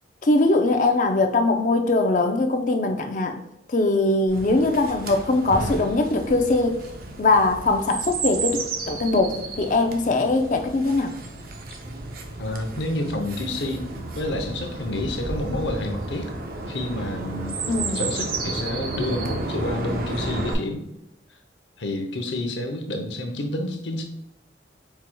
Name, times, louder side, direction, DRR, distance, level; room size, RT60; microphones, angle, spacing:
voice 1, 0.2-3.4 3.7-6.8 7.2-8.6 8.9-11.1 17.7-18.1, left 2 dB, 45° left, 5 dB, 0.5 m, -21 dB
Chirp tweet, 4.3-20.5, right 3 dB, 50° right, 0.6 m, -32 dB
voice 2, 12.4-16.3 16.7-17.6 17.9-20.8 21.8-24.0, left 1 dB, 80° left, 4 dB, 0.7 m, -29 dB
4.5 x 4.5 x 2.2 m, 0.86 s
head